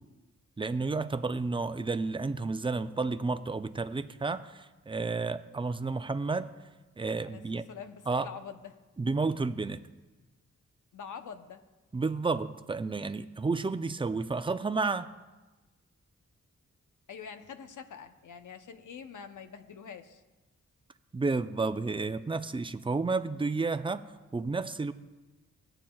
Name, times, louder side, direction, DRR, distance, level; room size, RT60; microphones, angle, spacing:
voice 1, 0.6-6.5 7.0-7.6 8.1-8.3 9.0-9.8 11.9-15.1 21.1-24.0 24.3-24.9, right 3 dB, 15° right, 11 dB, 0.5 m, -31 dB
voice 2, 7.7-8.8 10.9-11.6 17.1-20.2, left 6 dB, 85° left, 8 dB, 0.8 m, -45 dB
17.5 x 8.9 x 2.3 m, 1.2 s
cardioid pair, 75°, 30 cm